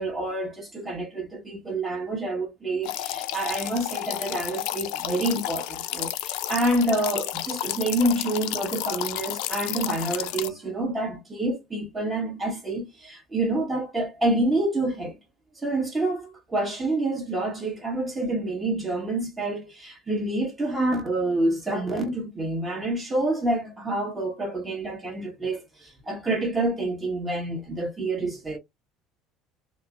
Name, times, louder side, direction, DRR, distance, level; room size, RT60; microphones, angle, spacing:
voice 1, 0.0-15.2 15.6-28.6, right 2 dB, 20° right, 1.3 m, -27 dB
sound 1, 2.8-10.5, left 14 dB, 75° left, 0.3 m, -32 dB
3.1 x 2.0 x 2.4 m
supercardioid pair, 95°, 0 cm